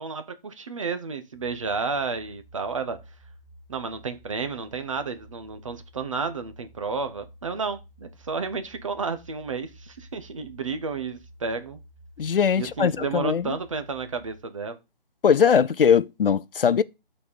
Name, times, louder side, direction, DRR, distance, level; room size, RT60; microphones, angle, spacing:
voice 1, 0.0-3.0 3.7-11.8 12.5-14.8, right 4 dB, 35° right, 0.8 m, -31 dB
sound 1, 1.3-14.4, right 1 dB, 30° left, 2.1 m, -51 dB
voice 2, 12.2-13.5 15.2-16.8, left 7 dB, 65° left, 0.5 m, -20 dB
8.2 x 4.3 x 5.2 m
figure-of-eight pair, 160°, 30 cm